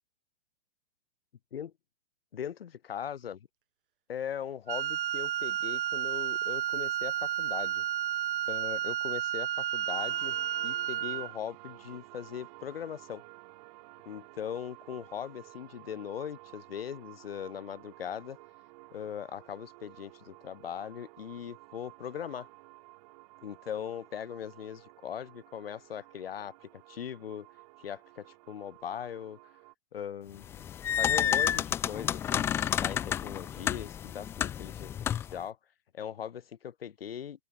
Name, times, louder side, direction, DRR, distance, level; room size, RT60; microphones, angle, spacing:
voice 1, 2.3-3.5 4.1-7.8 8.5-10.3 10.6-13.2 14.1-18.4 18.9-22.5 23.4-27.5 27.8-29.4 29.9-30.7 31.0-34.9 35.3-35.6 35.9-37.5, left 9 dB, 70° left, 0.9 m, -40 dB
Wind instrument woodwind instrument, 4.7-11.3, right 11 dB, 60° right, 0.5 m, -32 dB
sound 1, 9.9-29.7, right 24 dB, 40° right, 3.4 m, -53 dB
sound 2, 30.4-35.4, left 9 dB, 10° left, 0.4 m, -30 dB
open air
figure-of-eight pair, 115°, 30 cm